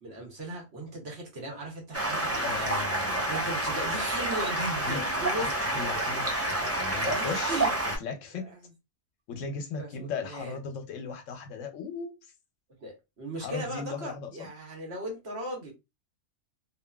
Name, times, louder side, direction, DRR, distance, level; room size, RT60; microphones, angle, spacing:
voice 1, 0.0-2.8 3.3-5.5 6.4-7.7 8.3-8.7 9.7-10.6 12.8-15.7, right 1 dB, 60° right, 1.2 m, -38 dB
Stream, 1.9-8.0, right 1 dB, 20° right, 0.5 m, -29 dB
voice 2, 2.4-3.4 4.8-5.1 5.4-7.6 8.0-8.5 9.3-12.1 13.4-14.5, left 5 dB, 85° left, 1.0 m, -37 dB
2.6 x 2.5 x 2.2 m
omnidirectional pair, 1.3 m